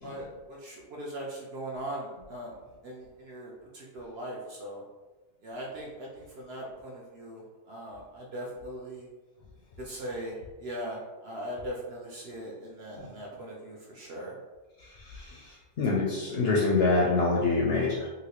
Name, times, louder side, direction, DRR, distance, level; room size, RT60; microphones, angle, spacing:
voice 1, 0.0-2.5 2.8-4.8 5.4-9.1 9.8-14.4, right 1 dB, 60° right, -3 dB, 0.7 m, -40 dB
voice 2, 15.1-15.4 15.8-18.1, left 3 dB, 65° left, -3 dB, 0.6 m, -25 dB
3.0 x 2.6 x 2.8 m, 1.2 s
omnidirectional pair, 1.4 m